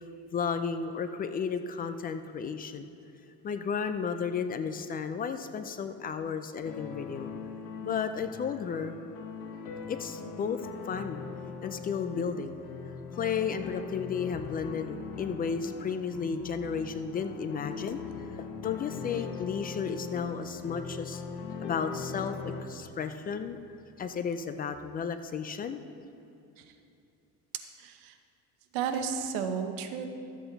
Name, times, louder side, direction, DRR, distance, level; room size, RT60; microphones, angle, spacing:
voice 1, 0.3-2.9 3.4-7.3 7.8-8.9 9.9-11.2 11.6-12.6 13.2-18.0 18.6-21.2 21.6-23.6 24.0-25.8, left 6 dB, 25° left, 9 dB, 0.4 m, -33 dB
sound 1, 6.6-22.6, left 5 dB, 85° left, 1.4 m, -41 dB
voice 2, 27.8-28.1 28.7-30.1, right 7 dB, 80° right, 6 dB, 1.0 m, -32 dB
13.0 x 7.9 x 4.0 m, 2.7 s
cardioid pair, 130°, 33 cm